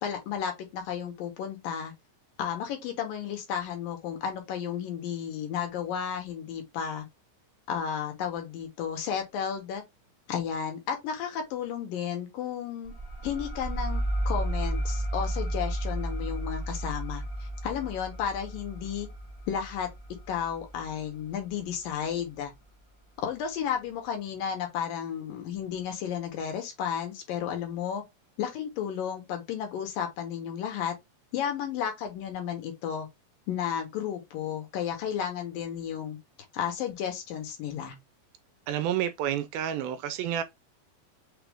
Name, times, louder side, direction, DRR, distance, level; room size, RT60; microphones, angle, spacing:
voice 1, 0.0-1.9 2.4-7.1 7.7-9.8 10.3-12.9 13.2-19.1 19.5-19.9 20.3-22.5 23.2-28.0 28.4-30.9 31.3-33.1 33.5-36.2 36.5-38.0, left 8 dB, 70° left, 2.5 m, -33 dB
sound 1, 12.8-22.1, right 1 dB, 5° right, 0.8 m, -33 dB
voice 2, 38.7-40.4, right 10 dB, 80° right, 2.3 m, -29 dB
6.1 x 2.5 x 3.5 m
omnidirectional pair, 4.4 m